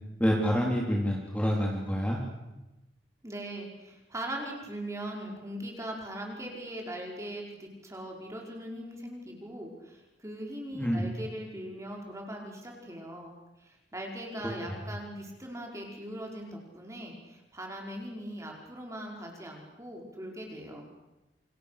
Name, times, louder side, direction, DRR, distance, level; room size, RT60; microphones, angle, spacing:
voice 1, 0.2-2.2 10.7-11.1, equal, 10° left, -1 dB, 3.6 m, -27 dB
voice 2, 3.2-20.9, right 1 dB, 15° right, 0 dB, 5.2 m, -40 dB
29.0 x 27.5 x 6.8 m, 1.0 s
head